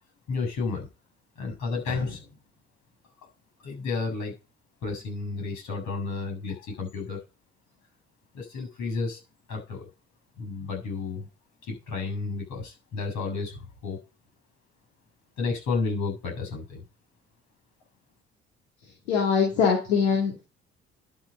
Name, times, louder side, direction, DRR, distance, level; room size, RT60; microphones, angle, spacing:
voice 1, 0.3-0.9 1.4-2.4 3.2-3.3 3.6-4.3 4.8-7.2 8.3-9.2 9.5-9.9 10.4-11.3 11.6-14.0 15.4-16.8, left 4 dB, 65° left, 5 dB, 7.3 m, -32 dB
voice 2, 19.1-20.4, left 6 dB, 85° left, -2 dB, 2.6 m, -22 dB
12.0 x 6.5 x 5.5 m, 0.29 s
hypercardioid pair, 50°, 31 cm